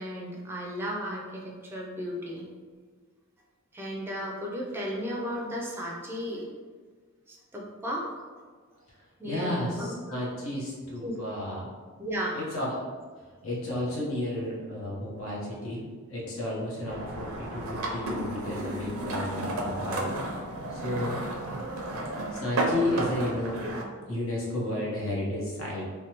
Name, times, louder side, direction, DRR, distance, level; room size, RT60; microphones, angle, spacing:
voice 1, 0.0-2.5 3.7-6.5 7.3-8.1 9.2-10.0 11.0-11.2 12.0-12.4, equal, 10° right, -2 dB, 0.4 m, -34 dB
voice 2, 9.2-11.7 12.3-12.8 13.4-20.1 20.7-21.2 22.3-23.6 24.1-25.9, left 1 dB, 70° left, -5 dB, 0.9 m, -32 dB
sound 1, 16.9-23.8, right 1 dB, 85° right, 0.5 m, -32 dB
3.3 x 2.2 x 2.8 m, 1.5 s
head